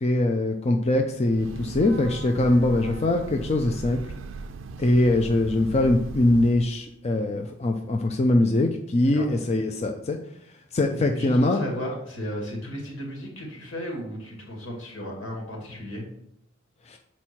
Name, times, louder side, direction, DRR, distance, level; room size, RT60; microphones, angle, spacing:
voice 1, 0.0-4.0 4.8-10.2 10.7-11.6 16.9-17.0, left 1 dB, 35° left, 4 dB, 0.5 m, -22 dB
Breathing / Train, 1.2-6.7, right 4 dB, 70° right, 0.4 m, -38 dB
voice 2, 11.1-16.0, equal, 80° left, -1 dB, 2.3 m, -34 dB
7.3 x 4.3 x 4.6 m, 0.76 s
head